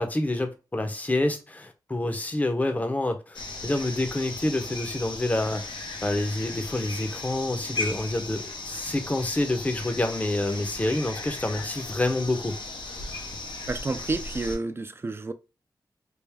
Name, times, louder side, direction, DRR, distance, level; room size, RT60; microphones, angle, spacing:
voice 1, 0.0-5.7 6.0-12.5, left 2 dB, 20° left, 0.7 m, -27 dB
sound 1, 3.3-14.6, left 3 dB, 85° left, 0.8 m, -36 dB
voice 2, 13.7-15.3, right 3 dB, 30° right, 0.4 m, -30 dB
3.5 x 2.5 x 3.3 m
wide cardioid pair, 80°, 8 cm